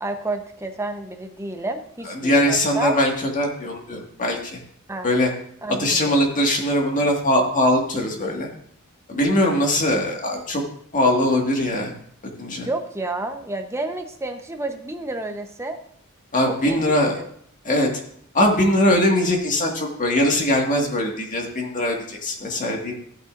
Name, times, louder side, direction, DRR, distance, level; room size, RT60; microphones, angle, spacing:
voice 1, 0.0-2.9 4.9-5.1 5.6-6.2 12.6-15.8 16.4-17.3, right 2 dB, 15° right, 5 dB, 0.9 m, -30 dB
voice 2, 2.2-4.6 5.0-5.3 5.8-8.5 9.1-10.6 10.9-11.9 12.4-12.7 16.3-17.2 17.7-17.9 18.3-22.9, left 1 dB, 35° left, 1 dB, 1.9 m, -21 dB
14.5 x 8.8 x 2.6 m, 0.65 s
head